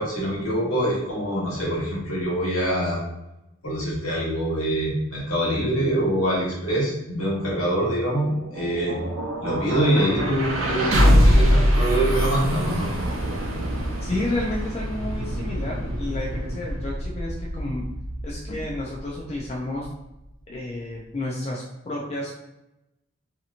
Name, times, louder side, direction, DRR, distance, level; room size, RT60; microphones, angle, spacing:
voice 1, 0.0-3.0 3.6-8.9 9.4-12.9, right 1 dB, 85° left, -6 dB, 1.4 m, -24 dB
sound 1, 8.2-20.0, equal, 80° right, 0.6 m, -24 dB
voice 2, 14.0-17.9 18.2-19.9 20.5-22.4, left 1 dB, 30° left, -3 dB, 0.4 m, -31 dB
2.8 x 2.8 x 2.4 m, 0.91 s
head